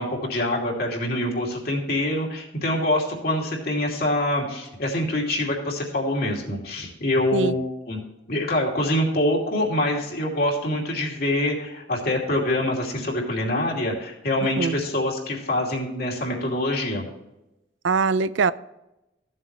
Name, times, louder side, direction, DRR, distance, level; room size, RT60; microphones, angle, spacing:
voice 1, 0.0-8.0 8.3-17.0, left 1 dB, 55° left, 2.7 m, -25 dB
voice 2, 14.6-14.9 17.8-18.5, right 4 dB, 80° right, 0.5 m, -22 dB
15.5 x 7.6 x 3.2 m
head